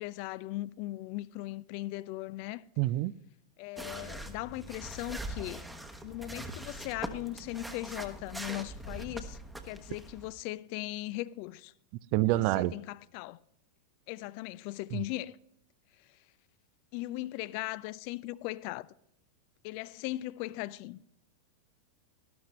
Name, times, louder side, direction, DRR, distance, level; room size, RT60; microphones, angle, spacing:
voice 1, 0.0-2.6 3.6-5.7 6.0-9.4 9.6-11.7 12.3-13.4 14.1-15.4 16.9-18.9 19.6-21.0, left 17 dB, 45° left, 0.3 m, -38 dB
voice 2, 2.8-3.1 12.1-12.8 14.9-15.0, right 17 dB, 45° right, 0.3 m, -27 dB
sound 1, 3.8-10.3, right 1 dB, 5° right, 1.0 m, -42 dB
12.5 x 12.0 x 3.1 m
figure-of-eight pair, 90°, 0 cm